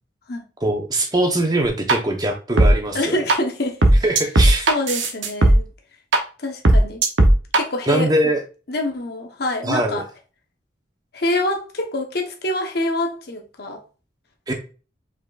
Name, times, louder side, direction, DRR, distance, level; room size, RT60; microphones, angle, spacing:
voice 1, 0.6-3.1 4.0-4.7 7.9-8.4 9.6-10.0 14.5-14.6, right 1 dB, 20° right, 0.9 m, -21 dB
sound 1, 1.7-1.9 2.6-2.7 3.3-3.4 3.8-5.5 6.1-6.2 6.6-7.6, right 2 dB, 85° right, 0.8 m, -14 dB
voice 2, 2.9-3.8 4.7-5.7 6.4-7.0 7.5-8.1 8.7-10.0 11.1-13.8, left 1 dB, 55° left, 1.0 m, -25 dB
5.1 x 4.2 x 2.4 m
head